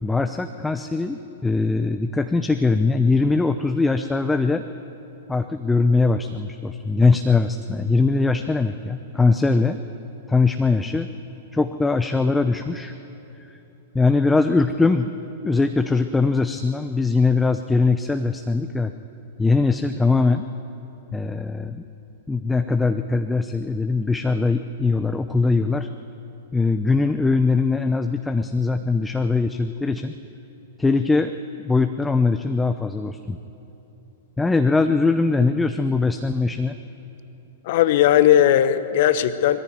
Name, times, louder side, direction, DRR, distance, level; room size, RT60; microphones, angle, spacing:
voice 1, 0.0-4.6 5.3-9.8 10.3-11.1 11.5-12.9 13.9-15.1 15.4-18.9 19.4-20.4 21.1-21.8 22.3-25.9 26.5-30.1 30.8-31.3 31.6-33.4 34.4-36.8, left 3 dB, 10° left, 8 dB, 0.6 m, -21 dB
voice 2, 37.6-39.6, left 11 dB, 50° left, 14 dB, 0.9 m, -17 dB
20.0 x 15.0 x 9.4 m, 3.0 s
figure-of-eight pair, 105°, 0 cm